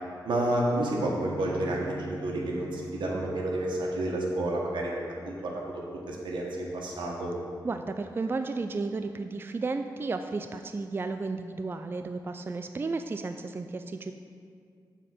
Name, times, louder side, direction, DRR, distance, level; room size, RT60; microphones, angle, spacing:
voice 1, 0.2-4.9 5.2-7.3, right 1 dB, 85° right, -2 dB, 1.4 m, -30 dB
sound 1, 0.8-4.3, right 4 dB, 10° left, 1.1 m, -44 dB
voice 2, 7.6-14.1, right 3 dB, 30° right, 8 dB, 0.3 m, -33 dB
7.2 x 4.2 x 6.7 m, 2.2 s
wide cardioid pair, 85°, 8 cm